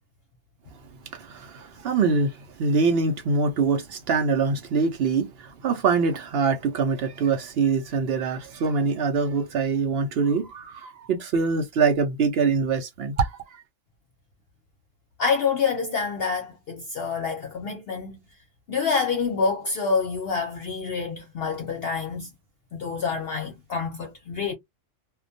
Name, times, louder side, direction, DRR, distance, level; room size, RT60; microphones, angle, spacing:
voice 1, 1.1-13.6, right 4 dB, 65° right, 0.7 m, -24 dB
voice 2, 15.2-18.2 18.7-22.3 22.7-24.5, left 5 dB, 60° left, 0.7 m, -27 dB
2.2 x 2.2 x 2.6 m
omnidirectional pair, 1.3 m